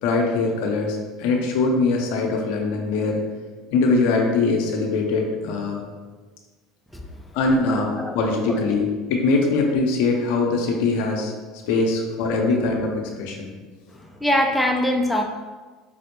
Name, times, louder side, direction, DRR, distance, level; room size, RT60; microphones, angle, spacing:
voice 1, 0.0-3.2 3.7-5.8 7.3-7.9 8.1-11.3 11.7-13.5, left 3 dB, 75° left, 1 dB, 0.6 m, -22 dB
voice 2, 7.7-8.2 8.5-8.6 13.9-15.2, left 1 dB, 5° left, 1 dB, 0.4 m, -23 dB
5.1 x 2.0 x 3.0 m, 1.4 s
hypercardioid pair, 90°, 0 cm